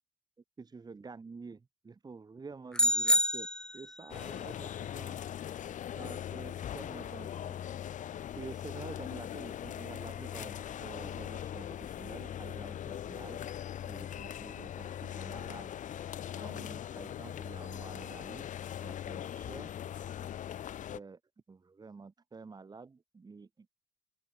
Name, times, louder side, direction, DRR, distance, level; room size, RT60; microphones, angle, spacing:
voice 1, 0.6-3.5 3.7-5.2 5.9-7.6 8.4-13.5 13.9-15.7 16.4-19.7 20.9-21.2 21.5-23.7, right 4 dB, 25° right, 2.1 m, -49 dB
sound 1, 2.7-4.1, left 1 dB, 5° left, 0.8 m, -28 dB
sound 2, 4.1-21.0, left 10 dB, 50° left, 0.9 m, -40 dB
open air
cardioid pair, 110°, 17 cm